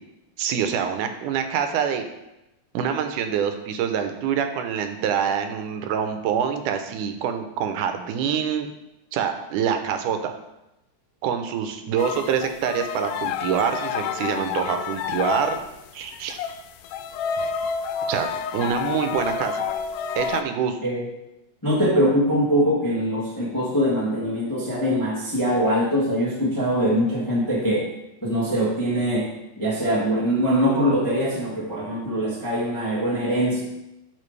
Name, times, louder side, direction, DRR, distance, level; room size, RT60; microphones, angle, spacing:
voice 1, 0.4-2.1 2.7-8.7 9.1-10.3 11.2-15.6 15.9-16.4 18.1-19.7 20.1-20.8, right 8 dB, 80° right, 6 dB, 2.2 m, -25 dB
sound 1, 12.0-15.8 16.1-20.4, left 6 dB, 85° left, 2.1 m, -29 dB
voice 2, 21.6-27.9 28.2-29.3 29.6-33.6, equal, 15° left, -5 dB, 0.6 m, -22 dB
12.5 x 4.8 x 3.3 m, 0.92 s
omnidirectional pair, 3.6 m